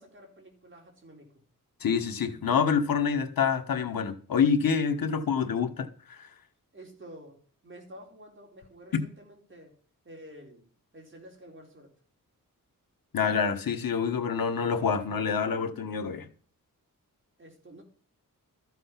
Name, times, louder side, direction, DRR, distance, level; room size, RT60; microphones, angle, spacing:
voice 1, 0.0-1.3 5.5-5.6 6.7-9.7 10.0-10.7 10.9-11.9 17.4-17.8, right 1 dB, 35° right, 4.2 m, -50 dB
voice 2, 1.8-6.3 8.9-9.0 13.1-16.3, left 6 dB, 85° left, 1.5 m, -27 dB
14.0 x 7.8 x 5.9 m
wide cardioid pair, 135°, 34 cm